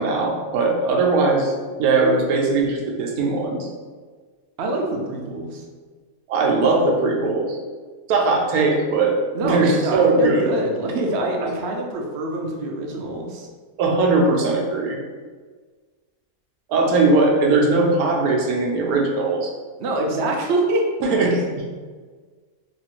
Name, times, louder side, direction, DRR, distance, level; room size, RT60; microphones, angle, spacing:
voice 1, 0.0-1.5 1.8-3.7 6.3-7.6 8.1-9.2 9.4-10.4 13.8-15.0 16.7-19.5 21.0-21.4, right 3 dB, 90° right, 0 dB, 1.1 m, -19 dB
voice 2, 4.6-5.6 9.3-13.5 19.8-20.9, right 1 dB, 65° right, 0 dB, 0.7 m, -25 dB
3.1 x 2.5 x 2.9 m, 1.5 s
omnidirectional pair, 1.5 m